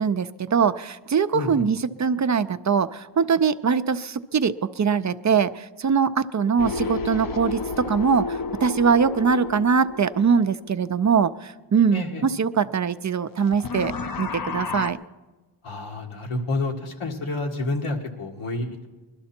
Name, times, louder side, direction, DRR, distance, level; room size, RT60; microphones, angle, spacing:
voice 1, 0.0-13.9 14.2-15.0, right 6 dB, 35° right, 13 dB, 0.4 m, -22 dB
voice 2, 1.3-1.7 11.9-12.2 15.6-18.9, left 2 dB, 85° left, 2 dB, 1.9 m, -29 dB
sound 1, 6.6-11.2 13.4-14.9, left 4 dB, 45° left, 0.6 m, -31 dB
21.5 x 12.5 x 4.4 m, 1.2 s
wide cardioid pair, 100°, 50 cm